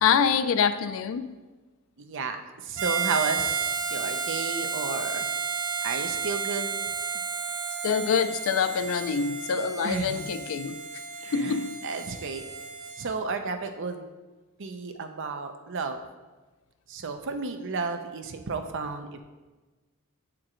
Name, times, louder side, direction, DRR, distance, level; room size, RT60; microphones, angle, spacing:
voice 1, 0.0-1.4 7.8-10.8 11.3-11.7, left 6 dB, 65° left, 12 dB, 0.4 m, -25 dB
voice 2, 2.0-5.3 5.8-6.7 9.8-10.3 11.2-12.4 13.0-14.1 14.6-16.0 16.9-19.2, right 4 dB, 60° right, 7 dB, 0.6 m, -32 dB
Harmonica, 2.8-13.0, right 5 dB, 85° right, 0.8 m, -32 dB
7.6 x 4.5 x 3.8 m, 1.2 s
head